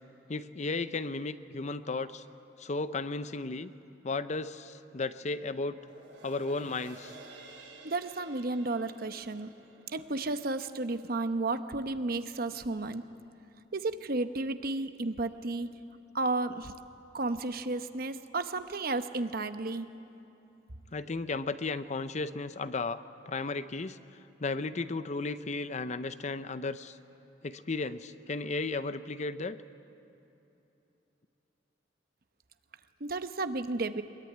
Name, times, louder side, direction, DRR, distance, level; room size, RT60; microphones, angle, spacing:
voice 1, 0.3-2.2 2.6-3.7 4.0-5.8 6.2-7.1 20.9-24.0 24.4-27.0 27.4-29.6, left 3 dB, 40° left, 13 dB, 0.7 m, -34 dB
sound 1, 5.6-12.2 12.6-12.7, right 2 dB, 90° right, 7.3 m, -53 dB
voice 2, 7.8-9.5 9.9-13.0 13.7-15.7 16.1-16.7 17.1-19.9 33.0-34.0, right 2 dB, 55° right, 10 dB, 1.0 m, -32 dB
22.5 x 22.0 x 9.4 m, 3.0 s
head